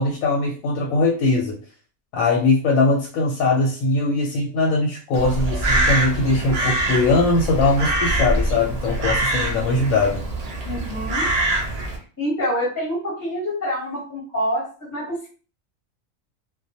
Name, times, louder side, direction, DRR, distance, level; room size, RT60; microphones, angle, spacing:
voice 1, 0.0-1.6 2.1-10.2, left 2 dB, 85° left, 0 dB, 1.0 m, -20 dB
Crow, 5.1-12.0, right 1 dB, 90° right, 0.3 m, -24 dB
voice 2, 10.6-11.3 12.2-14.6 14.9-15.3, equal, 15° left, -4 dB, 0.8 m, -26 dB
2.3 x 2.1 x 2.6 m, 0.39 s
omnidirectional pair, 1.4 m